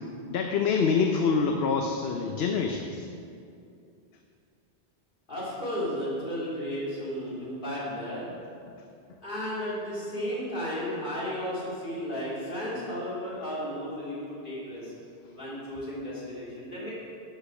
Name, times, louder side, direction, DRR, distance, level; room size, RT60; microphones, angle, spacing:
voice 1, 0.3-3.1, left 5 dB, 70° left, 3 dB, 0.9 m, -26 dB
voice 2, 5.3-8.3 9.2-14.9 15.3-16.9, equal, 50° left, -8 dB, 3.4 m, -34 dB
11.0 x 6.7 x 6.2 m, 2.5 s
omnidirectional pair, 1.1 m